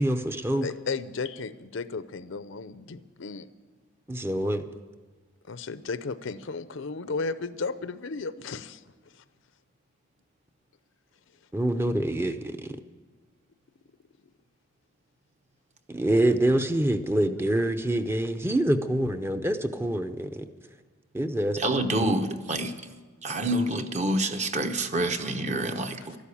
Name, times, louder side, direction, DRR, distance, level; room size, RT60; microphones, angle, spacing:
voice 1, 0.0-0.7 4.1-4.6 11.5-12.8 15.9-20.5 21.1-21.6 22.0-22.1, right 1 dB, 10° right, 8 dB, 0.6 m, -26 dB
voice 2, 0.6-3.5 5.5-8.8 11.8-11.9, left 4 dB, 70° left, 14 dB, 0.6 m, -34 dB
voice 3, 21.6-22.8 23.2-26.2, right 1 dB, 35° right, 7 dB, 0.9 m, -27 dB
13.5 x 11.5 x 8.5 m, 1.4 s
head